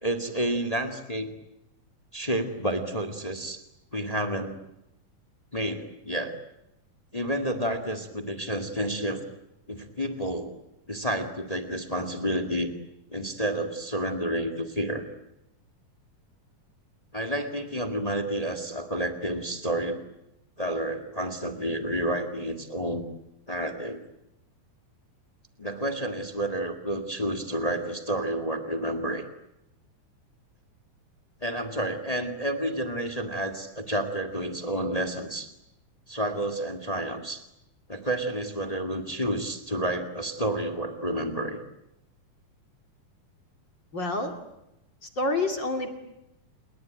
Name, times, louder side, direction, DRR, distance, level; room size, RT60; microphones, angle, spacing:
voice 1, 0.0-1.3 2.1-3.6 3.9-4.6 5.5-6.3 7.1-9.2 9.7-10.5 10.9-12.7 13.1-15.0 17.1-20.1 20.6-23.0 23.5-24.0 25.6-29.2 31.4-35.5 36.1-37.4 37.9-41.6, right 1 dB, 15° left, 9 dB, 1.4 m, -30 dB
voice 2, 43.9-44.3 45.0-45.9, left 2 dB, 35° left, 5 dB, 2.9 m, -28 dB
29.0 x 21.0 x 9.2 m, 0.88 s
omnidirectional pair, 4.1 m